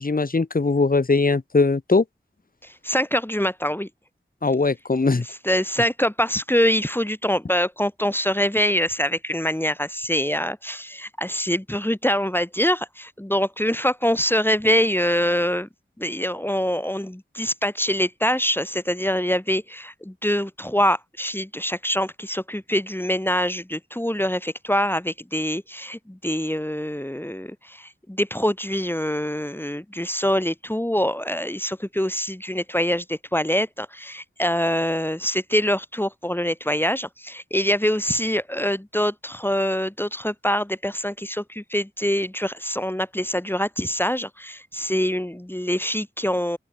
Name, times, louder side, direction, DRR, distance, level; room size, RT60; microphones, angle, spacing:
voice 1, 0.0-2.0 4.4-5.2, left 3 dB, 45° left, 1.4 m, -20 dB
voice 2, 2.6-3.9 5.1-15.7 16.0-46.6, equal, 10° left, 2.6 m, -24 dB
open air
wide cardioid pair, 50°, 20 cm